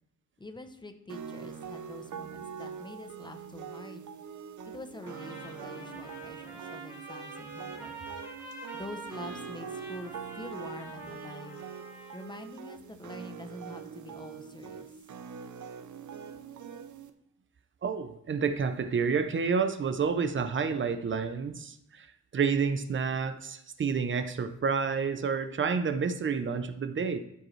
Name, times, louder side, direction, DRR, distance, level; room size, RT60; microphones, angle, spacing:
voice 1, 0.4-4.1 4.7-8.1 8.7-11.6 12.1-14.9, left 2 dB, 15° left, 7 dB, 0.6 m, -45 dB
sound 1, 1.1-17.1, right 7 dB, 80° right, 0.7 m, -43 dB
Trumpet, 5.0-12.4, right 1 dB, 15° right, 2.9 m, -46 dB
voice 2, 17.8-22.1 22.3-27.2, right 5 dB, 40° right, 9 dB, 0.6 m, -29 dB
13.0 x 5.2 x 3.2 m, 0.76 s
wide cardioid pair, 160°, 30 cm